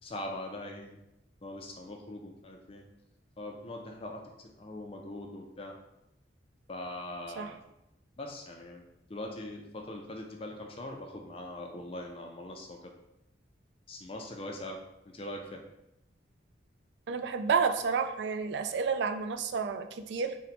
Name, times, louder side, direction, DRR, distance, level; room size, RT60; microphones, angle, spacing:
voice 1, 0.0-1.0 1.4-2.9 3.4-5.7 6.7-7.6 8.2-12.9 13.9-14.8 15.0-15.6, left 1 dB, 30° left, 2 dB, 0.4 m, -42 dB
voice 2, 17.1-20.4, right 5 dB, 65° right, 7 dB, 0.3 m, -30 dB
3.9 x 2.2 x 4.2 m, 0.86 s
head